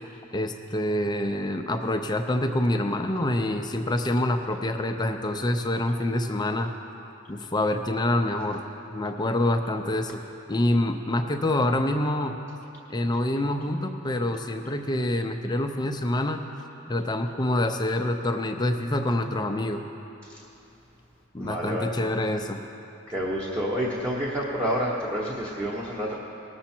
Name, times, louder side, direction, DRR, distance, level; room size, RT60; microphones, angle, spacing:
voice 1, 0.3-6.7 7.3-8.6 8.9-10.2 10.5-12.4 12.9-16.4 16.9-19.8 21.3-22.6, left 1 dB, 20° left, 5 dB, 0.5 m, -26 dB
voice 2, 21.4-21.9 23.1-26.1, equal, 15° right, -5 dB, 1.0 m, -29 dB
19.0 x 7.0 x 4.4 m, 2.9 s
head